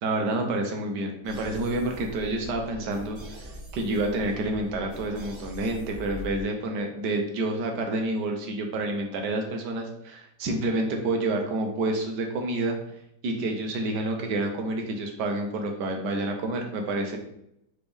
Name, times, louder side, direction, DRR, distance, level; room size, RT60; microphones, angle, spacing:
voice 1, 0.0-12.8 13.2-17.2, right 2 dB, 80° right, 3 dB, 1.4 m, -29 dB
sound 1, 1.2-6.4, equal, 40° right, 0.9 m, -42 dB
4.1 x 3.5 x 3.4 m, 0.77 s
omnidirectional pair, 1.8 m